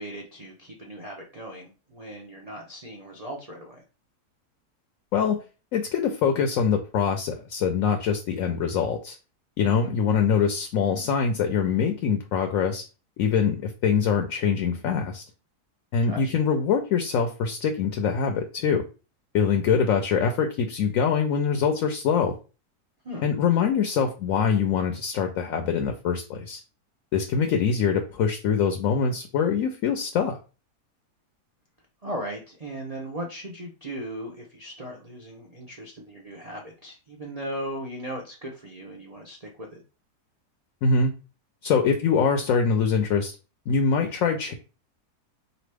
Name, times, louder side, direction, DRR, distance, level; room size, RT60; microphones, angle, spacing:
voice 1, 0.0-3.8 9.6-9.9 16.1-16.3 23.0-23.3 32.0-39.8, right 1 dB, 45° right, -1 dB, 0.5 m, -37 dB
voice 2, 5.7-9.1 9.6-12.8 13.2-15.2 15.9-18.8 19.3-22.4 23.2-26.6 27.1-30.4 40.8-41.1 41.6-43.4 43.7-44.5, left 6 dB, 65° left, 5 dB, 1.0 m, -24 dB
4.1 x 3.0 x 3.3 m, 0.33 s
omnidirectional pair, 1.7 m